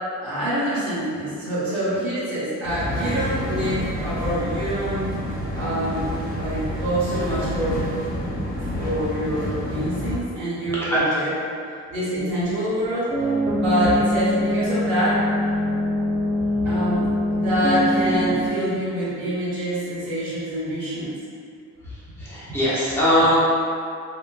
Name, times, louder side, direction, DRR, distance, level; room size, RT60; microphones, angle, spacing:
voice 1, 0.2-5.1 5.5-6.1 6.4-7.9 8.4-8.5 8.7-11.3 11.9-13.1 13.5-15.2 16.6-17.1 17.3-21.1, right 1 dB, 65° right, -10 dB, 1.3 m, -25 dB
sound 1, 2.6-10.2, equal, 30° left, 0.8 m, -28 dB
voice 2, 10.7-11.2 16.4-16.7 21.8-23.4, equal, 10° left, -10 dB, 1.1 m, -22 dB
sound 2, 13.1-18.5, left 1 dB, 20° right, 0.7 m, -23 dB
3.6 x 2.1 x 2.4 m, 2.4 s
cardioid pair, 90°, 30 cm